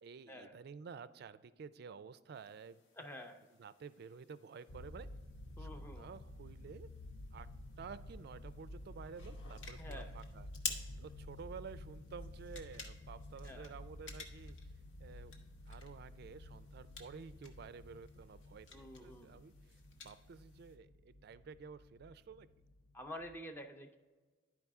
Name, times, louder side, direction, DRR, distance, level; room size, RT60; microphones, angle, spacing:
voice 1, 0.0-2.8 3.6-5.1 5.6-6.9 7.3-7.5 7.8-10.5 11.0-14.6 15.0-15.3 15.7-22.5, right 5 dB, 60° right, 15 dB, 0.3 m, -52 dB
sound 1, 2.3-20.8, left 5 dB, 85° left, 1.0 m, -53 dB
voice 2, 2.9-3.4 5.6-6.1 9.8-10.1 13.4-13.7 18.7-19.4 22.9-24.0, left 1 dB, 10° left, 5 dB, 0.5 m, -49 dB
sound 2, 4.7-23.4, left 1 dB, 65° left, 0.5 m, -52 dB
11.0 x 4.8 x 3.5 m, 1.3 s
head